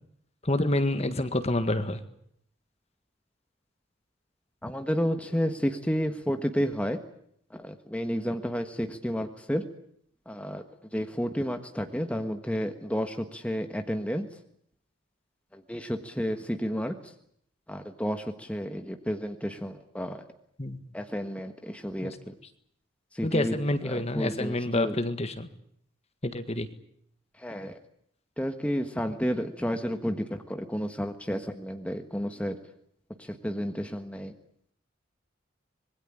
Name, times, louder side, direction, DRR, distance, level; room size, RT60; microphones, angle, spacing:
voice 1, 0.4-2.0 20.6-20.9 22.0-22.2 23.2-25.5 26.2-26.7, left 1 dB, 30° left, 9 dB, 1.7 m, -28 dB
voice 2, 4.6-7.0 7.5-9.6 10.2-10.6 10.9-14.3 15.5-17.1 17.7-20.3 20.9-22.3 23.1-23.5 23.8-24.9 27.4-27.7 28.4-32.6 33.2-34.3, equal, 5° left, 6 dB, 1.4 m, -31 dB
26.0 x 21.5 x 8.8 m, 0.70 s
head